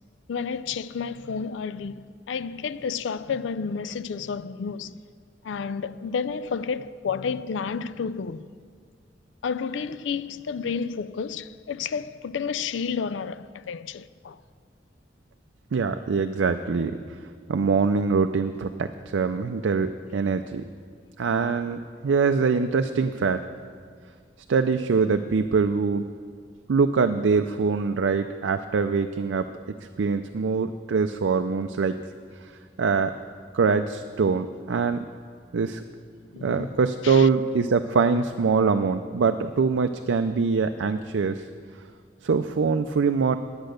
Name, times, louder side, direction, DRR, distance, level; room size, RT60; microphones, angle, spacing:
voice 1, 0.3-5.0 5.4-8.5 9.4-14.4 36.3-36.8 37.0-37.3, left 6 dB, 85° left, 0.4 m, -31 dB
voice 2, 15.7-17.0 17.5-20.6 21.2-23.4 24.5-26.1 26.7-29.5 30.0-32.0 32.8-33.1 33.5-35.1 35.5-35.8 36.4-41.5 42.2-43.4, right 5 dB, 90° right, 0.4 m, -23 dB
10.5 x 8.9 x 6.5 m
head